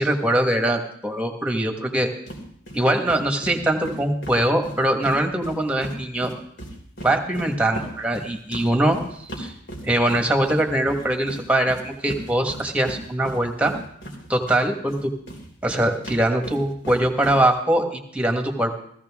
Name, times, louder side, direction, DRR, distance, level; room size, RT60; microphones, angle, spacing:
voice 1, 0.0-2.1 2.7-6.3 7.0-9.0 9.4-9.5 9.8-13.7 14.3-15.1 15.6-18.7, right 1 dB, 5° right, 4 dB, 1.5 m, -22 dB
sound 1, 2.3-2.4 2.7-2.8 3.1-6.0 6.2-14.6 14.9-17.4, right 1 dB, 75° left, 3.5 m, -36 dB
16.5 x 15.0 x 3.7 m, 0.67 s
head